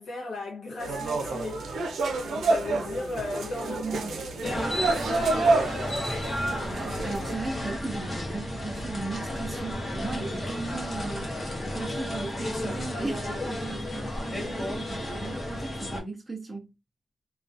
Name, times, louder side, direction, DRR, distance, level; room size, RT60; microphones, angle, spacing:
voice 1, 0.0-1.7 2.2-4.3, left 3 dB, 75° left, 0.7 m, -36 dB
sound 1, 0.8-7.3, right 3 dB, 85° right, 0.5 m, -28 dB
voice 2, 3.7-4.1 6.7-11.4 11.7-16.7, right 3 dB, 15° right, 0.4 m, -36 dB
sound 2, 4.4-16.0, left 1 dB, 25° left, 0.7 m, -33 dB
2.3 x 2.2 x 2.5 m
wide cardioid pair, 170°, 0 cm